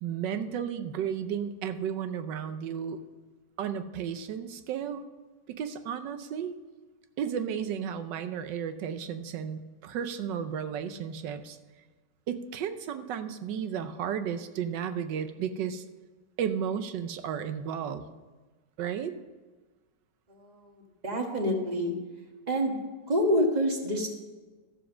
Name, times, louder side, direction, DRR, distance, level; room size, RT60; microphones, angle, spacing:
voice 1, 0.0-3.0 3.6-5.0 5.5-6.5 7.2-11.6 12.3-15.8 16.4-18.1 18.8-19.1, right 8 dB, 90° right, 10 dB, 1.4 m, -33 dB
voice 2, 20.3-21.9 22.5-22.8 23.1-24.1, equal, 25° right, 2 dB, 1.4 m, -27 dB
13.5 x 7.2 x 6.2 m, 1.3 s
omnidirectional pair, 1.9 m